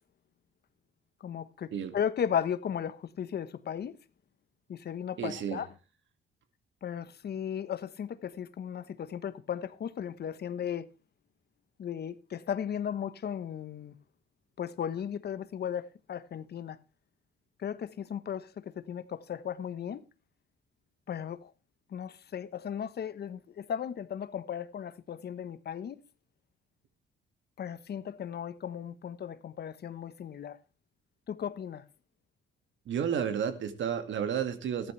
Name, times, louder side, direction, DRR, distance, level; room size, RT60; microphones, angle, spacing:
voice 1, 1.2-3.9 4.7-5.7 6.8-10.9 11.8-13.9 14.6-16.8 17.6-20.0 21.1-21.5 21.9-26.0 27.6-30.6 31.3-31.8, left 8 dB, 55° left, 1.2 m, -36 dB
voice 2, 5.2-5.6 32.9-34.9, right 8 dB, 70° right, 2.2 m, -31 dB
14.5 x 12.5 x 3.3 m
cardioid pair, 90°, 20 cm